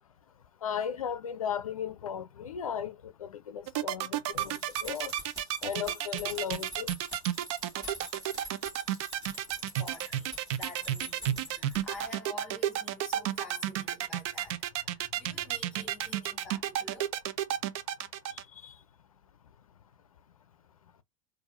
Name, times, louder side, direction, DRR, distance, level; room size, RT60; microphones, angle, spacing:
voice 1, 0.6-2.9 3.2-4.5 4.8-5.1 5.6-6.9, left 8 dB, 75° left, 0.5 m, -35 dB
sound 1, 3.7-18.4, right 12 dB, 50° right, 0.5 m, -31 dB
sound 2, 4.3-12.1, left 1 dB, 20° right, 2.4 m, -47 dB
voice 2, 9.8-17.1, left 2 dB, 5° left, 2.5 m, -48 dB
4.5 x 2.5 x 2.5 m
figure-of-eight pair, 85°, 18 cm